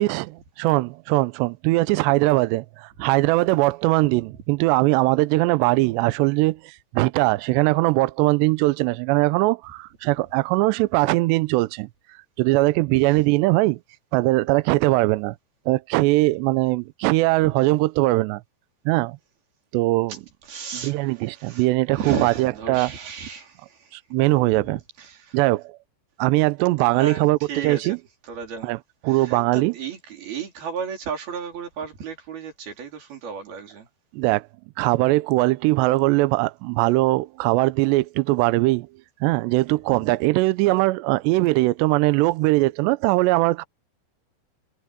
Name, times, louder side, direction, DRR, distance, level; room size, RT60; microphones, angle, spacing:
voice 1, 0.0-11.9 12.4-13.8 14.1-15.4 15.7-18.4 18.9-19.2 19.7-20.2 20.7-22.9 23.9-24.8 25.3-25.8 26.2-28.0 28.6-28.8 29.0-29.7 34.1-34.5 34.8-38.9 39.2-43.6, right 21 dB, 90° right, 2.5 m, -21 dB
voice 2, 20.4-21.7 21.9-23.9 24.6-25.4 26.9-28.0 28.2-28.8 29.1-33.9 39.9-40.1, right 6 dB, 50° right, 5.9 m, -34 dB
omnidirectional pair, 5.6 m